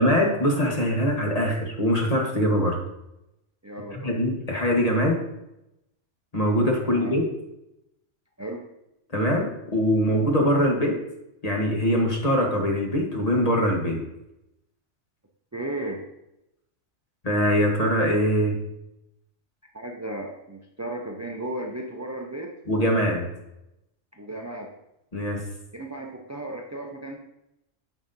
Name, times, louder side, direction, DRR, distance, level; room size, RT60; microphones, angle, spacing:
voice 1, 0.0-2.8 3.9-5.2 6.3-7.2 9.1-11.0 11.4-14.0 17.2-18.5 22.7-23.3 25.1-25.4, equal, 30° left, 0 dB, 1.3 m, -22 dB
voice 2, 3.6-4.2 6.8-7.1 8.4-8.6 15.5-16.0 19.7-22.5 24.1-24.7 25.7-27.2, right 1 dB, 25° right, 1 dB, 0.4 m, -35 dB
9.0 x 6.1 x 2.7 m, 0.87 s
omnidirectional pair, 1.3 m